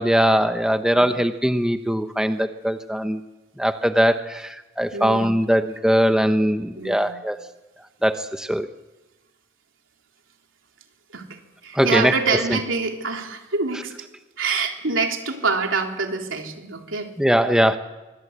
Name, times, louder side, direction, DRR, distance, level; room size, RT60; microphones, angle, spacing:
voice 1, 0.0-3.2 3.6-7.4 8.0-8.7 11.7-12.1 17.2-17.8, equal, 5° right, 8 dB, 0.8 m, -20 dB
voice 2, 4.9-5.3 6.8-7.1 11.1-13.9 14.4-17.1, right 4 dB, 85° right, 2 dB, 3.5 m, -26 dB
24.5 x 22.5 x 8.1 m, 1.1 s
head